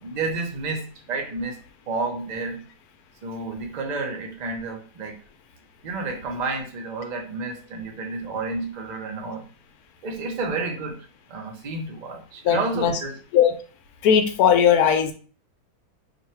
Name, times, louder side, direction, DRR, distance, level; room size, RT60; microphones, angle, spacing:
voice 1, 0.0-1.6 1.9-2.6 3.2-5.2 5.8-9.4 10.0-11.0 11.3-13.1, right 3 dB, 45° right, 1 dB, 0.6 m, -30 dB
voice 2, 12.4-13.0 13.3-13.5 14.0-15.1, left 8 dB, 80° left, 6 dB, 1.1 m, -18 dB
3.0 x 2.6 x 4.2 m, 0.41 s
omnidirectional pair, 1.6 m